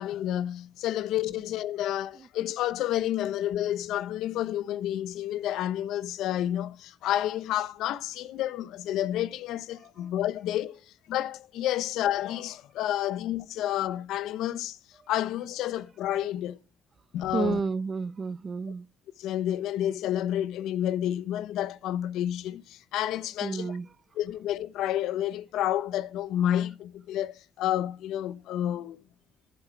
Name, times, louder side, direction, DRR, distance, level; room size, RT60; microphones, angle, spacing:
voice 1, 0.0-14.8 15.1-16.6 17.1-17.6 19.2-23.7 24.2-29.0, left 12 dB, 90° left, 0.9 m, -30 dB
voice 2, 17.3-18.9 23.4-24.0, right 5 dB, 40° right, 0.8 m, -31 dB
15.0 x 7.8 x 4.6 m
cardioid pair, 90°, 0 cm